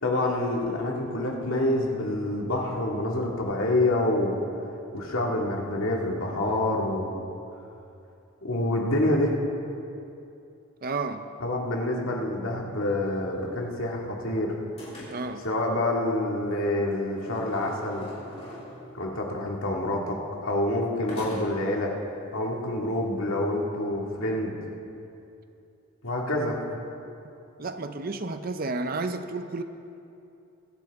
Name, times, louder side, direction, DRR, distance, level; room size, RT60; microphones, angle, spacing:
voice 1, 0.0-4.3 4.9-7.1 8.4-9.3 11.4-14.5 15.4-18.1 18.9-20.2 20.4-21.9 22.3-24.5 26.0-26.6, left 1 dB, 70° left, -1 dB, 2.0 m, -27 dB
voice 2, 10.8-11.3 15.1-15.5 27.6-29.6, right 3 dB, 40° right, 9 dB, 0.6 m, -31 dB
sound 1, 12.8-14.3 14.8-15.4 16.9-19.0 21.1-21.7, left 1 dB, 30° left, 3.4 m, -44 dB
22.5 x 10.5 x 3.6 m, 2.7 s
head